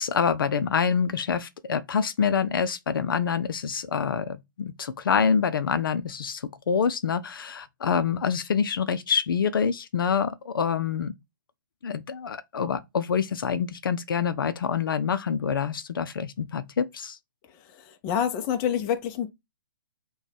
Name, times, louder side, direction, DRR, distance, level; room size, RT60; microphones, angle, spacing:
voice 1, 0.0-11.1 11.8-17.2, left 6 dB, 75° left, 0.5 m, -26 dB
voice 2, 17.5-19.3, left 9 dB, 30° left, 0.6 m, -28 dB
6.1 x 2.3 x 3.3 m
hypercardioid pair, 140°, 12 cm